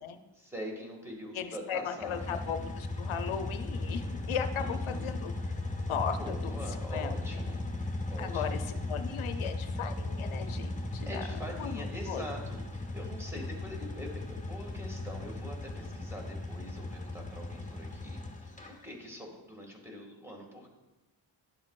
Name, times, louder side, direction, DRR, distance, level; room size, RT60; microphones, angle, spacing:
voice 1, 0.3-2.4 4.6-5.1 5.8-5.9 6.2-7.7 8.1-8.6 11.0-20.7, equal, 5° right, 0 dB, 1.8 m, -44 dB
voice 2, 1.3-5.3 5.9-6.5 6.9-7.4 8.2-11.2 11.6-12.2, left 7 dB, 85° left, 8 dB, 0.7 m, -37 dB
sound 1, 2.0-18.7, left 2 dB, 15° left, 1.2 m, -37 dB
11.0 x 7.4 x 2.4 m, 1.1 s
wide cardioid pair, 105°, 47 cm